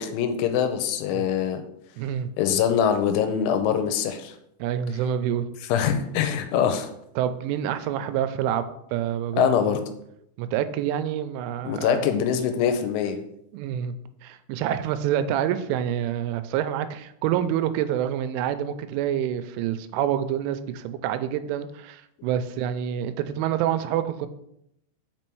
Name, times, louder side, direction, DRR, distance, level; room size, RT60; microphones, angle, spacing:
voice 1, 0.0-1.6 2.4-4.3 5.7-6.9 9.4-9.8 11.6-13.2, left 8 dB, 90° left, 7 dB, 3.1 m, -23 dB
voice 2, 2.0-2.3 4.6-5.5 7.2-9.5 10.4-12.1 13.5-13.9 14.2-24.3, right 10 dB, 90° right, 11 dB, 3.0 m, -27 dB
6.1 x 5.3 x 4.5 m, 0.77 s
omnidirectional pair, 5.5 m